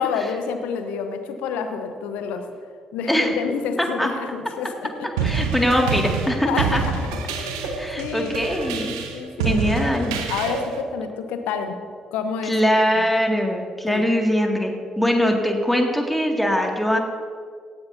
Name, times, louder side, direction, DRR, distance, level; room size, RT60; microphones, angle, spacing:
voice 1, 0.0-2.4 2.9-4.9 6.5-8.4 9.1-9.9 10.3-11.8 12.1-13.0 13.9-14.0, left 6 dB, 70° left, 7 dB, 1.0 m, -29 dB
voice 2, 3.8-4.1 5.2-6.8 7.8-8.9 9.4-10.1 12.4-17.0, equal, 5° left, 1 dB, 2.3 m, -22 dB
sound 1, 5.2-10.8, right 5 dB, 75° right, 0.8 m, -27 dB
17.5 x 13.5 x 2.8 m, 2.1 s
figure-of-eight pair, 40°, 3 cm